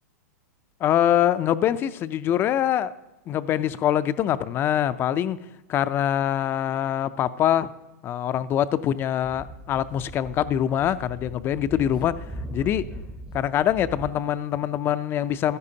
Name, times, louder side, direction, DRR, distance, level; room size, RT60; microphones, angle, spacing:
voice 1, 0.8-2.9 3.3-5.4 5.7-7.7 8.0-12.9 13.3-15.6, left 10 dB, 25° left, 14 dB, 0.4 m, -24 dB
Speech / Wind, 9.2-14.1, right 1 dB, 10° right, 0.7 m, -39 dB
15.0 x 12.5 x 2.8 m, 1.0 s
hypercardioid pair, 140°, 9 cm